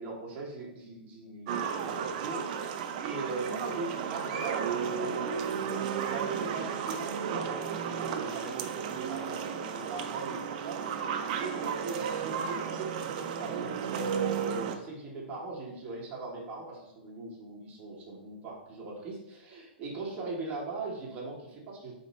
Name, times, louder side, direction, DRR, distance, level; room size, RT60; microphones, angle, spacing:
voice 1, 0.0-5.2 6.0-21.9, right 3 dB, 25° right, -3 dB, 1.3 m, -39 dB
sound 1, 1.5-14.8, right 7 dB, 45° right, 0.4 m, -34 dB
4.1 x 2.9 x 4.2 m, 0.86 s
hypercardioid pair, 150°, 6 cm